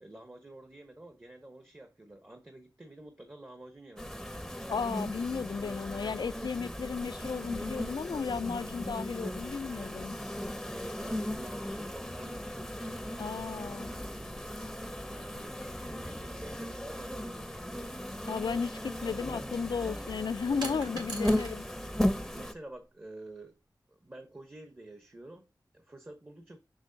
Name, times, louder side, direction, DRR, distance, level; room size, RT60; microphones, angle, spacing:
voice 1, 0.0-4.7 10.7-12.9 13.8-14.6 15.0-18.0 19.0-19.4 20.6-20.8 22.3-23.6 23.9-26.6, right 1 dB, 25° right, 1.0 m, -49 dB
sound 1, 4.0-22.5, left 1 dB, 5° left, 0.7 m, -37 dB
voice 2, 4.7-10.2 13.2-13.9 18.3-21.6, left 5 dB, 70° left, 0.4 m, -34 dB
sound 2, 20.6-21.6 21.9-22.8, right 3 dB, 70° right, 2.9 m, -43 dB
6.2 x 6.1 x 2.7 m
wide cardioid pair, 70°, 8 cm